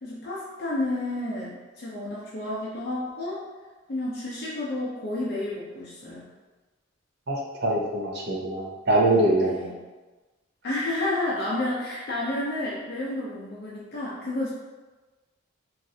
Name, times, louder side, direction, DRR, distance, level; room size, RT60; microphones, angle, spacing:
voice 1, 0.0-3.4 3.9-6.3 9.4-9.8 10.6-14.5, left 1 dB, 50° left, -6 dB, 0.5 m, -30 dB
voice 2, 7.3-9.6, right 1 dB, 50° right, -2 dB, 0.6 m, -23 dB
3.1 x 2.5 x 2.7 m, 1.2 s
head